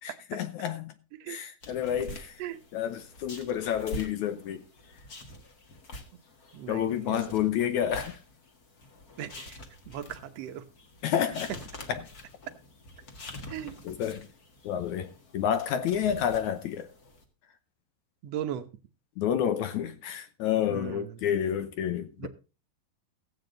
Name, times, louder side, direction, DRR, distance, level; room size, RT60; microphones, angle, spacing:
voice 1, 0.0-0.9 1.3-2.4 2.7-4.6 6.7-8.1 11.0-11.5 11.9-12.0 13.9-14.3 14.6-16.9 19.2-22.3, left 9 dB, 75° left, 1.9 m, -29 dB
sound 1, 1.6-17.2, left 1 dB, 40° left, 1.4 m, -46 dB
voice 2, 6.5-7.4 9.2-9.6 9.9-10.6 13.5-13.8 18.2-18.7 20.7-21.2 22.2-22.3, right 10 dB, 75° right, 1.5 m, -38 dB
15.0 x 8.8 x 3.9 m
omnidirectional pair, 4.1 m